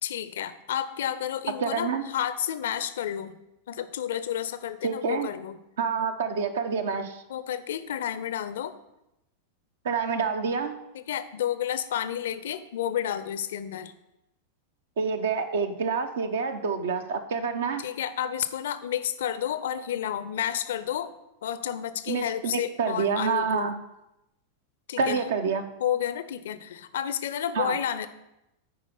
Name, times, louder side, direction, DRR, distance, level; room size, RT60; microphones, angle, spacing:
voice 1, 0.0-3.4 3.7-5.6 7.3-8.8 10.9-13.9 17.8-21.1 21.4-23.7 24.9-25.2 25.8-28.1, left 10 dB, 60° left, 14 dB, 0.5 m, -31 dB
voice 2, 1.6-2.0 4.8-5.3 5.8-7.2 9.8-10.8 15.0-17.8 22.1-23.8 25.0-25.6 27.6-27.7, right 5 dB, 60° right, 8 dB, 0.8 m, -27 dB
9.6 x 4.9 x 5.3 m, 0.89 s
figure-of-eight pair, 90°, 0 cm